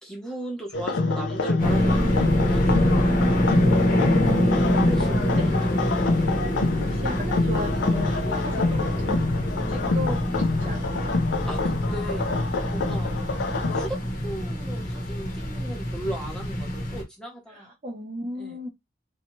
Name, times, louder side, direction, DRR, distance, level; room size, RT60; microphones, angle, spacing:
voice 1, 0.0-3.3 4.6-5.8 11.4-13.1 13.7-17.7 18.3-18.7, right 1 dB, 5° left, 0.8 m, -37 dB
sound 1, 0.7-13.9, left 3 dB, 70° left, 0.5 m, -26 dB
sound 2, 1.6-17.0, equal, 50° left, 0.9 m, -25 dB
voice 2, 5.3-5.7 6.8-9.2 9.7-11.1 17.5-18.7, equal, 35° right, 0.6 m, -35 dB
2.7 x 2.3 x 3.0 m
head